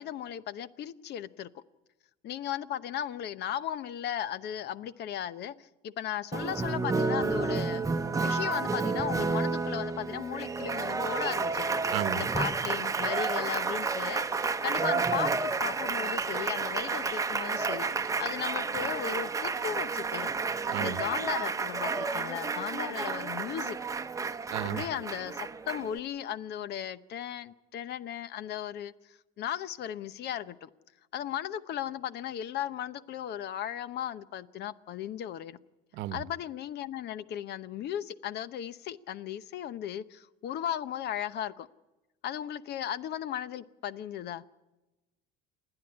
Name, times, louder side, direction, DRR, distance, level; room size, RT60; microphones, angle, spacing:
voice 1, 0.0-1.6 2.2-7.9 8.2-11.7 12.1-20.3 20.8-23.8 24.6-30.7 31.1-35.6 36.1-41.7 42.2-44.4, left 10 dB, 55° left, 0.9 m, -36 dB
Applause, 6.3-26.0, right 4 dB, 15° right, 0.9 m, -31 dB
voice 2, 11.9-12.3 20.7-21.0 24.5-24.8 35.9-36.2, right 14 dB, 65° right, 1.0 m, -33 dB
28.5 x 9.9 x 9.9 m
supercardioid pair, 100°, 21 cm